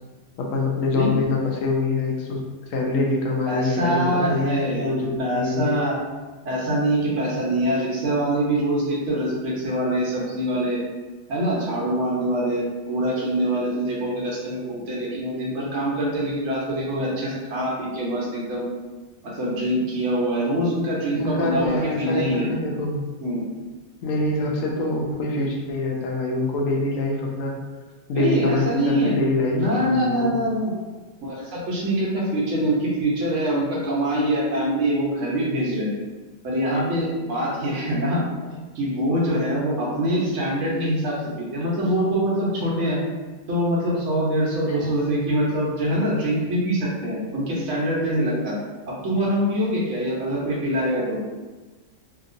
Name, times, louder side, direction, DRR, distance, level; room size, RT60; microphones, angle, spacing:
voice 1, 0.4-2.4 2.7-5.8 21.1-23.0 24.0-27.6 28.1-30.3 44.7-45.2, left 2 dB, 85° left, 0 dB, 1.0 m, -25 dB
voice 2, 3.5-6.0 6.4-10.8 11.3-18.7 19.2-22.5 23.2-23.4 28.1-29.2 29.5-30.7 31.2-35.9 36.4-38.2 38.7-43.0 43.5-48.5 48.9-51.2, right 1 dB, 65° right, -5 dB, 1.2 m, -24 dB
2.9 x 2.8 x 2.5 m, 1.3 s
omnidirectional pair, 1.4 m